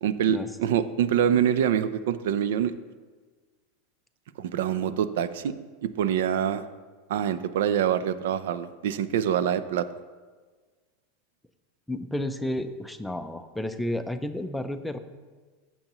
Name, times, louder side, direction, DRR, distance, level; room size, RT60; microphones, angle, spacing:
voice 1, 0.0-2.7 4.4-5.5 5.8-6.6 7.1-9.9, right 9 dB, 80° right, 13 dB, 0.5 m, -25 dB
voice 2, 11.9-15.0, left 1 dB, ahead, 8 dB, 0.5 m, -31 dB
14.5 x 6.9 x 3.0 m, 1.4 s
supercardioid pair, 160°, 0 cm